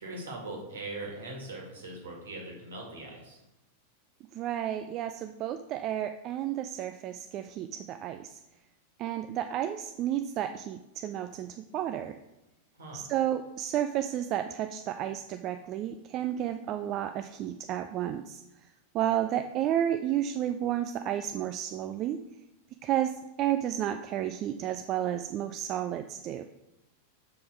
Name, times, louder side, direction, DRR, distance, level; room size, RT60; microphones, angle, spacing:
voice 1, 0.0-3.4 12.7-13.1, right 2 dB, 65° right, -1 dB, 2.1 m, -41 dB
voice 2, 4.3-8.4 9.0-12.2 12.9-18.4 18.9-22.2 22.8-26.4, right 11 dB, 35° right, 8 dB, 0.3 m, -32 dB
6.9 x 5.2 x 4.5 m, 0.92 s
figure-of-eight pair, 90°, 0 cm